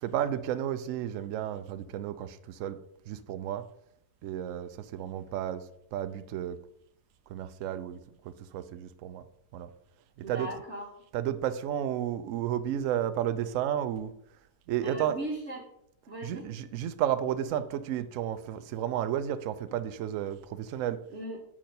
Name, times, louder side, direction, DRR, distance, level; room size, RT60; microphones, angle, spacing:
voice 1, 0.0-2.8 3.1-3.6 4.2-5.6 5.9-6.6 7.3-9.2 9.5-9.7 10.2-10.5 11.1-14.1 14.7-15.2 16.2-21.0, right 10 dB, 70° right, 11 dB, 0.8 m, -32 dB
voice 2, 10.2-10.9 14.8-15.7 16.1-16.5 21.1-21.4, right 1 dB, 50° right, -1 dB, 1.3 m, -37 dB
7.3 x 4.4 x 5.1 m, 0.74 s
omnidirectional pair, 1.7 m